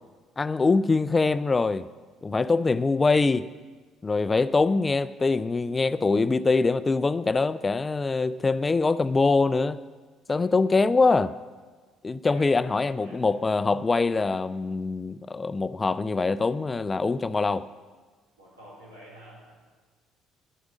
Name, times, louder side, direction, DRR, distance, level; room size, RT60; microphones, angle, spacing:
voice 1, 0.4-1.9 2.2-3.5 4.0-9.8 10.3-11.3 12.0-17.7, left 3 dB, 25° left, 15 dB, 0.3 m, -23 dB
voice 2, 10.3-10.6 12.2-13.2 18.4-19.5, right 1 dB, 80° right, -7 dB, 3.5 m, -48 dB
10.0 x 9.4 x 6.3 m, 1.4 s
figure-of-eight pair, 50°, 0 cm